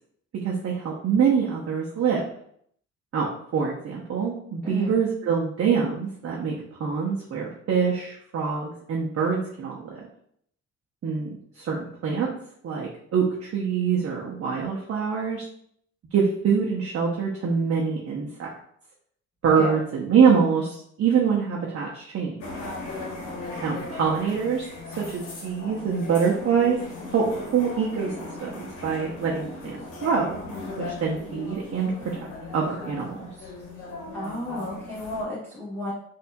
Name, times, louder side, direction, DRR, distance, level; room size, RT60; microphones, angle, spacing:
voice 1, 0.3-2.2 3.1-10.0 11.0-11.3 11.5-12.3 12.6-15.4 16.1-18.5 19.4-22.3 23.6-24.6 25.0-26.8 27.1-28.1 28.4-30.4 30.8-33.3, right 6 dB, 50° right, -3 dB, 0.8 m, -25 dB
voice 2, 4.6-4.9 19.5-19.7 34.1-35.9, left 1 dB, 5° left, -10 dB, 1.4 m, -32 dB
sound 1, 22.4-35.2, left 2 dB, 85° left, 1.1 m, -38 dB
4.2 x 2.7 x 2.3 m, 0.66 s
cardioid pair, 90°, 30 cm